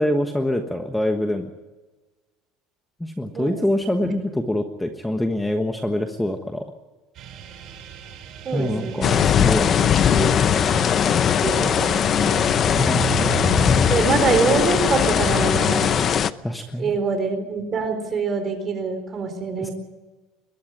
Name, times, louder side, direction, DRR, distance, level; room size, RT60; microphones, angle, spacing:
voice 1, 0.0-1.5 3.0-6.6 8.5-9.8 12.7-13.9 16.4-16.9 19.6-19.7, left 1 dB, 5° left, 5 dB, 1.3 m, -25 dB
sound 1, 7.1-16.1, right 10 dB, 45° right, 4.3 m, -36 dB
voice 2, 8.4-9.4 9.8-10.3 11.4-12.5 13.5-13.6 13.9-16.0 16.8-19.7, right 5 dB, 30° right, 6 dB, 4.5 m, -25 dB
sound 2, 9.0-16.3, left 8 dB, 35° left, 0.7 m, -19 dB
22.5 x 12.5 x 9.7 m, 1.2 s
cardioid pair, 135°, 0 cm